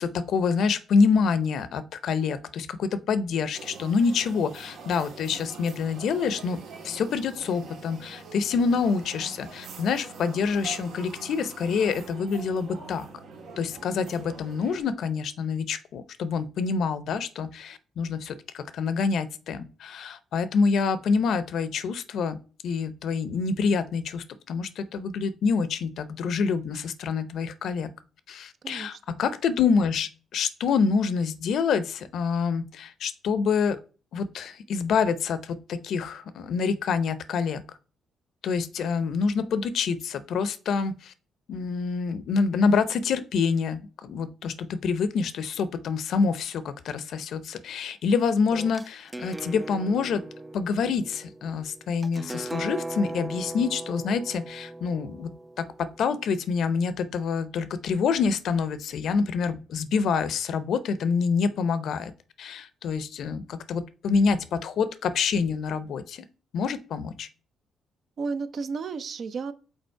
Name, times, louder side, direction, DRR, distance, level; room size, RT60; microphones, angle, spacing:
voice 1, 0.0-13.1 13.6-27.9 28.3-33.8 34.1-37.6 38.4-41.1 41.5-50.2 50.5-62.1 62.4-66.2 66.5-67.3, left 5 dB, 70° left, 14 dB, 0.6 m, -27 dB
sound 1, 3.5-14.8, right 5 dB, 75° right, 1.6 m, -44 dB
voice 2, 28.6-29.2 68.2-69.5, right 4 dB, 55° right, 12 dB, 0.6 m, -33 dB
sound 2, 48.5-56.2, right 2 dB, 15° right, 0.3 m, -38 dB
5.4 x 3.9 x 4.5 m, 0.36 s
cardioid pair, 90°, 0 cm